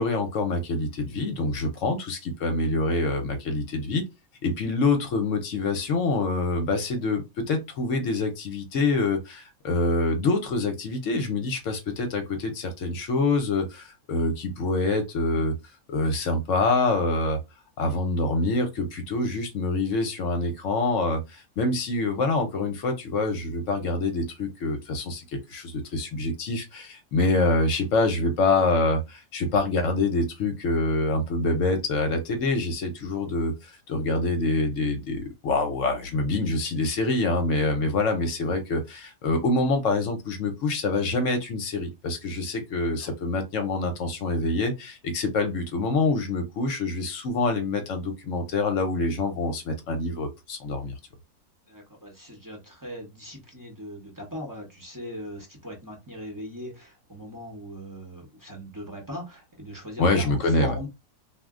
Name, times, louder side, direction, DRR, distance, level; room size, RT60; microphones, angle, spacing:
voice 1, 0.0-4.0 4.4-15.5 15.9-17.4 17.8-50.9 60.0-60.7, left 2 dB, 65° left, 0.9 m, -26 dB
voice 2, 51.7-60.9, equal, 20° right, 0.7 m, -39 dB
2.5 x 2.1 x 3.6 m
omnidirectional pair, 1.5 m